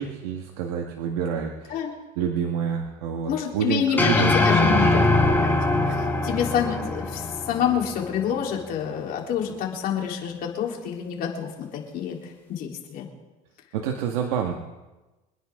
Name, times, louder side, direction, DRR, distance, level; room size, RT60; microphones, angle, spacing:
voice 1, 0.0-1.8 2.2-4.3 4.6-5.1 13.7-14.5, right 8 dB, 80° right, 1 dB, 1.7 m, -28 dB
voice 2, 3.3-5.5 5.8-13.1, left 8 dB, 55° left, 0 dB, 3.8 m, -28 dB
sound 1, 4.0-8.4, left 2 dB, 10° left, 4.4 m, -22 dB
26.5 x 10.0 x 3.8 m, 1.1 s
supercardioid pair, 110°, 18 cm